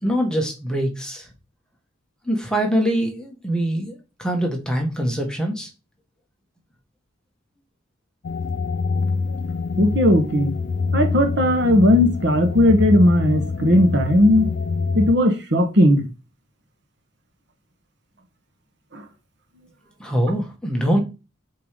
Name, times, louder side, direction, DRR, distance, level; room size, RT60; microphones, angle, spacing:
voice 1, 0.0-1.3 2.2-5.7 20.0-21.0, equal, 5° left, 1.4 m, -23 dB
sound 1, 8.2-15.1, left 4 dB, 55° left, 0.4 m, -25 dB
voice 2, 9.8-10.5 10.9-14.5 14.9-16.1 18.9-19.0, left 1 dB, 60° right, 1.2 m, -17 dB
5.3 x 4.5 x 5.1 m
head